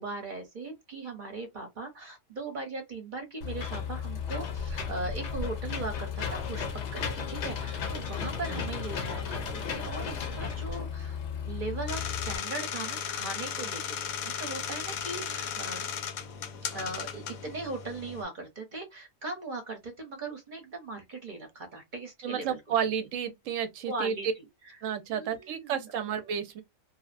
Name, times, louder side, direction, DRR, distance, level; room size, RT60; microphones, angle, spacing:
voice 1, 0.0-6.7 6.9-11.2 11.5-14.0 14.2-15.8 16.7-22.9 23.9-24.3 25.1-25.8, right 3 dB, 40° right, 0.8 m, -39 dB
Engine / Mechanisms, 3.4-12.4, left 6 dB, 60° left, 0.8 m, -34 dB
sound 1, 11.9-18.2, left 8 dB, 80° left, 1.1 m, -36 dB
voice 2, 22.2-24.2 24.8-26.6, right 8 dB, 70° right, 0.9 m, -31 dB
2.8 x 2.0 x 2.4 m
omnidirectional pair, 1.5 m